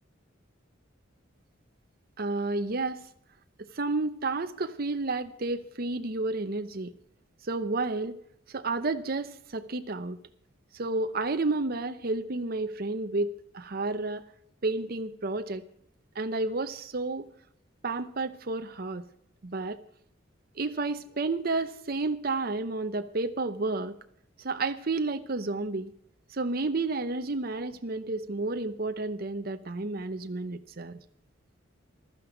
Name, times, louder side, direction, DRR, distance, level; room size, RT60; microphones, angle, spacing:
voice 1, 2.2-3.0 3.6-6.9 7.4-8.2 8.5-10.2 10.7-14.2 14.6-15.6 16.2-17.2 17.8-19.0 19.4-19.8 20.6-24.0 24.4-25.9 26.3-31.0, right 3 dB, 50° right, 9 dB, 0.8 m, -31 dB
15.0 x 12.5 x 5.1 m, 0.69 s
head